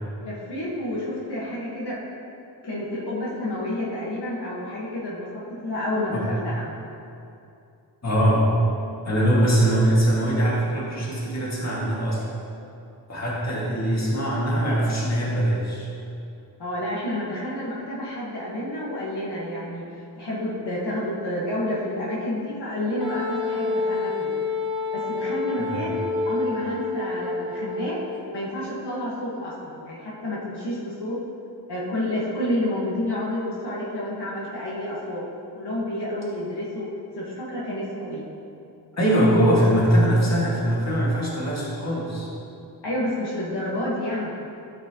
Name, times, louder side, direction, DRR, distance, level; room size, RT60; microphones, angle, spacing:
voice 1, 0.2-2.0 2.6-6.7 16.6-19.8 20.1-24.3 24.9-26.0 26.2-28.0 28.3-31.2 31.7-35.2 35.5-36.9 37.2-38.3 42.8-44.3, left 1 dB, 70° left, -7 dB, 1.6 m, -29 dB
voice 2, 8.0-8.4 9.1-12.3 13.1-15.9 25.6-26.0 39.0-42.3, right 1 dB, 40° left, -6 dB, 2.1 m, -22 dB
Wind instrument woodwind instrument, 23.0-28.1, left 3 dB, 10° right, 1.0 m, -28 dB
13.0 x 6.0 x 3.0 m, 2.6 s
wide cardioid pair, 110°, 42 cm